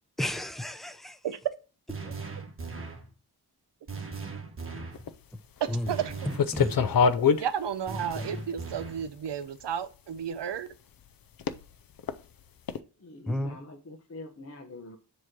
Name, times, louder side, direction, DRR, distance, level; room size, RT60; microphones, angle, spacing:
voice 1, 0.2-1.2 5.7-5.9 6.3-6.7 13.3-13.6, left 1 dB, ahead, 9 dB, 0.6 m, -32 dB
sound 1, 1.9-3.1 3.9-5.0 5.9-7.1 7.9-9.1, right 3 dB, 30° right, 1.3 m, -38 dB
sound 2, 4.9-5.1 5.7-5.9 6.3-7.4 8.2-8.3 9.3-9.4 11.4-11.6 12.0-12.1 12.7-12.8, left 6 dB, 55° left, 0.6 m, -24 dB
voice 2, 5.6-6.1 7.4-10.7, right 8 dB, 85° right, 11 dB, 0.8 m, -32 dB
voice 3, 13.0-15.0, left 2 dB, 35° left, 2 dB, 1.0 m, -45 dB
7.3 x 3.2 x 6.0 m, 0.34 s
wide cardioid pair, 110°, 41 cm